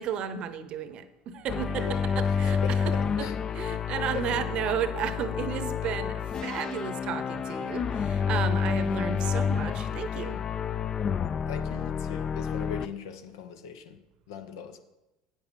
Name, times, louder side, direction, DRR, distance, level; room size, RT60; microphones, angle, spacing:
voice 1, 0.0-10.4, right 8 dB, 50° right, 12 dB, 0.8 m, -34 dB
sound 1, 1.5-12.9, left 6 dB, 30° left, 0.4 m, -29 dB
voice 2, 2.3-3.4 4.1-4.5 11.3-14.8, left 7 dB, 90° left, 8 dB, 0.9 m, -40 dB
8.7 x 7.4 x 5.4 m, 1.0 s
supercardioid pair, 115°, 2 cm